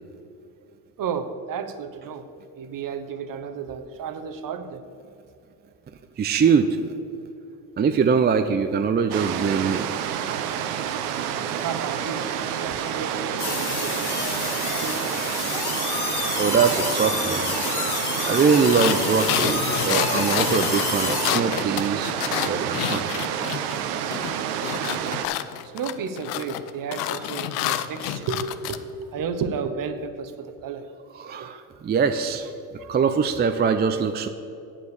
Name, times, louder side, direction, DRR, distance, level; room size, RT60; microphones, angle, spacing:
voice 1, 1.0-2.3 2.5-4.8 11.6-14.2 14.6-15.2 25.6-30.9 31.4-31.5 32.8-32.9, right 6 dB, 45° right, 9 dB, 1.0 m, -32 dB
voice 2, 6.2-6.9 7.8-9.9 16.4-17.5 18.3-22.1 22.5-23.2 31.2-32.5 32.9-34.3, right 6 dB, 20° right, 8 dB, 0.5 m, -22 dB
sound 1, 9.1-25.3, right 9 dB, 85° right, 0.8 m, -29 dB
sound 2, 13.4-21.3, left 5 dB, 55° left, 2.3 m, -29 dB
sound 3, 18.5-23.8 24.1-28.8, left 12 dB, 85° left, 0.6 m, -29 dB
9.0 x 7.1 x 6.6 m, 2.6 s
hypercardioid pair, 75°, 46 cm